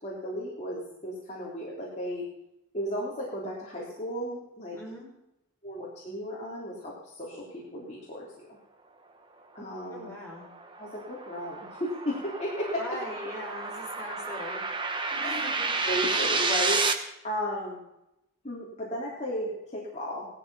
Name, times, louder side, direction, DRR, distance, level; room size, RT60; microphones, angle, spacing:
voice 1, 0.0-2.3 2.7-4.8 5.6-8.5 9.5-10.1 10.8-13.0 15.2-15.5 15.8-17.8 18.4-20.3, equal, 30° left, -5 dB, 3.5 m, -34 dB
voice 2, 4.7-5.1 9.9-10.5 12.8-14.6 15.1-15.7, left 1 dB, 10° left, -5 dB, 6.3 m, -40 dB
sound 1, 10.1-16.9, right 4 dB, 20° right, 1.2 m, -30 dB
17.5 x 13.5 x 5.7 m, 0.86 s
head